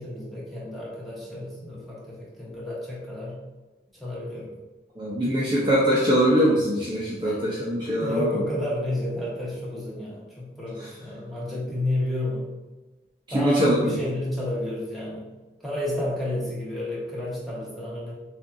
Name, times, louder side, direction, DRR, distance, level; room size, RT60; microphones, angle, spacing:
voice 1, 0.0-3.4 4.0-4.5 7.2-7.4 8.0-12.5 13.3-15.3 15.6-18.1, left 1 dB, ahead, -7 dB, 1.2 m, -31 dB
voice 2, 5.0-8.4 10.8-10.9 13.3-14.0, equal, 25° right, -7 dB, 0.7 m, -22 dB
6.4 x 2.6 x 2.6 m, 1.2 s
head